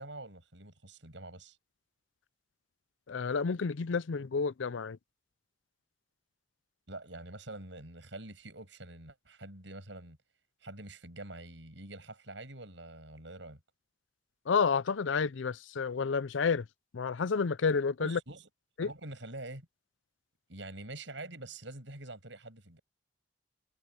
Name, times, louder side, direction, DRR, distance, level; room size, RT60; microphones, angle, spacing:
voice 1, 0.0-1.6 6.9-10.2 10.6-13.6 18.0-18.5 18.8-19.7 20.5-22.8, right 2 dB, 75° right, 7.8 m, -46 dB
voice 2, 3.1-5.0 14.5-16.6 16.9-18.2 18.8-18.9, left 5 dB, 85° left, 0.5 m, -30 dB
head